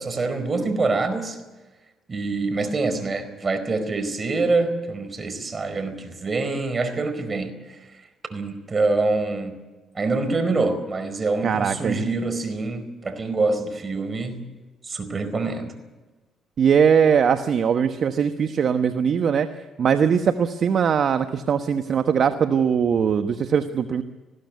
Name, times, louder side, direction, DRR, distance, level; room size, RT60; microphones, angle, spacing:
voice 1, 0.0-1.4 2.1-7.5 8.3-9.6 9.9-14.4 14.8-15.7, right 3 dB, 40° right, 9 dB, 4.6 m, -25 dB
voice 2, 11.4-12.0 16.6-19.5 19.8-24.0, right 7 dB, 60° right, 8 dB, 1.1 m, -20 dB
20.5 x 15.5 x 9.4 m, 1.2 s
supercardioid pair, 55°, 0 cm